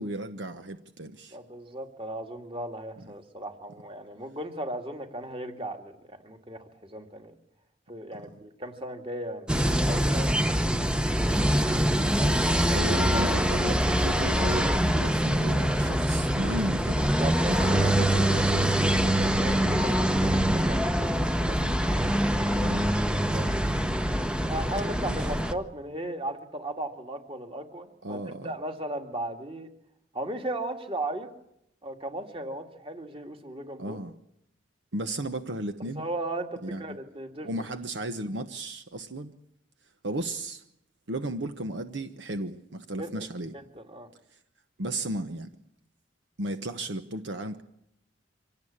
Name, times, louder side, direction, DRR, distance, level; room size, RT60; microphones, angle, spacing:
voice 1, 0.0-1.4 12.0-17.0 17.5-19.0 21.5-21.8 22.6-22.9 25.0-25.3 28.0-28.5 33.8-34.1 34.9-36.1 36.6-36.8 37.4-39.3 40.0-40.6 41.1-43.5 44.8-45.5 46.4-47.6, right 1 dB, 65° right, 1.0 m, -34 dB
voice 2, 1.3-7.3 7.9-10.9 12.2-13.4 17.0-17.6 18.9-22.4 23.3-23.5 24.4-29.7 30.1-31.3 31.8-34.0 36.0-37.5 43.0-43.1 43.7-44.1, right 1 dB, 30° right, 2.1 m, -37 dB
sound 1, 9.5-25.5, equal, 5° right, 0.8 m, -24 dB
25.0 x 17.5 x 8.7 m
head